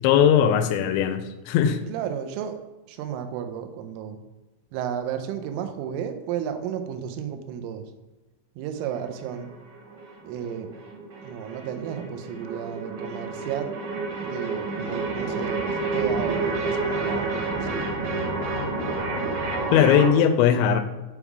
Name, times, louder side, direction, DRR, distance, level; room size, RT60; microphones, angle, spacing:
voice 1, 0.0-1.8 19.7-20.8, left 8 dB, 85° left, 8 dB, 2.6 m, -19 dB
voice 2, 1.9-2.6 2.9-4.2 4.7-7.8 8.6-9.5 10.2-10.7 11.2-13.8 14.2-17.9, right 8 dB, 90° right, 7 dB, 3.2 m, -33 dB
sound 1, 8.8-20.1, right 3 dB, 70° right, 1.8 m, -29 dB
8.3 x 3.6 x 4.7 m, 1.1 s
omnidirectional pair, 5.7 m